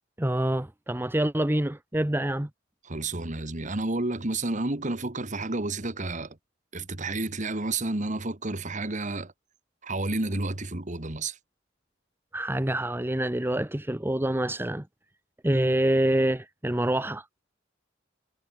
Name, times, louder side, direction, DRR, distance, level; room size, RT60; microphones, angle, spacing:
voice 1, 0.2-2.5 12.3-14.9 15.4-17.2, right 1 dB, 10° right, 0.8 m, -26 dB
voice 2, 2.8-6.4 6.7-9.3 9.8-11.4, right 2 dB, 40° right, 1.7 m, -30 dB
head